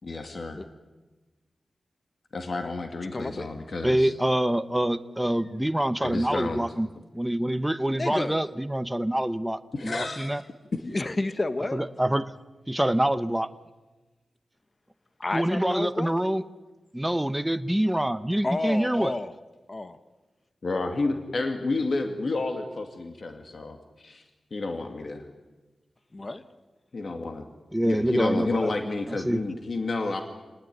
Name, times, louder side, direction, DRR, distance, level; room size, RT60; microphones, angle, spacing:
voice 1, 0.0-0.6 2.3-4.1 6.0-6.7 9.7-10.4 20.6-24.2 24.5-25.3 26.9-27.5 27.8-30.2, left 3 dB, 50° left, 5 dB, 2.2 m, -30 dB
voice 2, 3.1-3.5 7.9-8.4 10.8-11.8 15.2-16.1 18.4-19.3 19.7-20.0 26.1-26.4, left 2 dB, 30° left, 12 dB, 1.2 m, -30 dB
voice 3, 3.8-6.9 7.1-10.4 11.7-12.3 12.7-13.5 15.3-16.4 16.9-19.1 27.7-28.7 29.1-29.4, right 1 dB, 5° right, 11 dB, 0.9 m, -26 dB
27.5 x 19.5 x 9.4 m, 1.2 s
wide cardioid pair, 120°, 0 cm